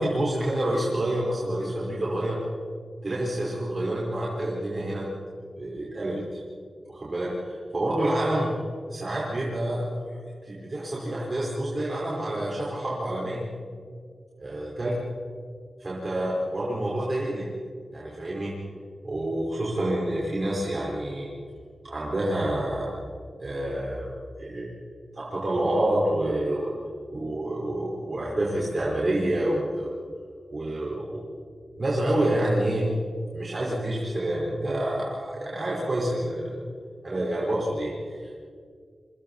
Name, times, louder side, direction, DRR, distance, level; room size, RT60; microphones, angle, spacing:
voice 1, 0.0-2.4 3.0-5.1 5.5-6.4 6.9-8.5 8.9-9.8 10.1-13.4 14.4-14.9 15.8-17.5 17.9-18.6 19.0-21.3 21.8-22.9 23.4-24.1 24.4-24.7 25.1-26.7 27.1-29.9 30.5-31.2 31.8-32.9 33.3-36.5 37.0-38.4, right 1 dB, 45° right, -5 dB, 4.9 m, -28 dB
28.0 x 25.0 x 4.3 m, 2.1 s
cardioid pair, 55°, 0 cm